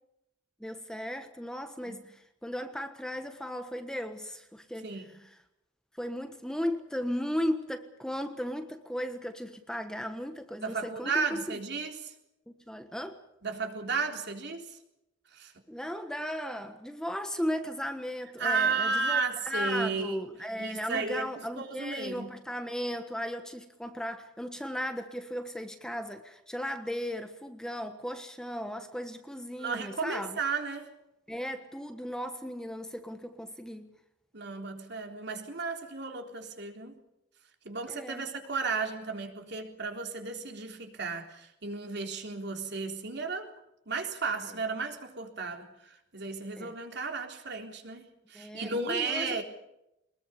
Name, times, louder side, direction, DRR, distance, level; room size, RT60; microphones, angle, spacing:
voice 1, 0.6-4.9 6.0-11.4 12.5-13.2 15.7-30.4 31.3-33.9 37.9-38.2 46.6-46.7 48.3-49.4, equal, 5° left, 1.3 m, -36 dB
voice 2, 4.8-5.2 10.6-12.1 13.4-14.8 15.3-15.5 18.4-20.2 20.6-22.3 29.6-30.9 34.3-37.0 37.7-43.5 43.9-49.4, right 4 dB, 60° right, 3.7 m, -34 dB
23.5 x 21.0 x 7.1 m
head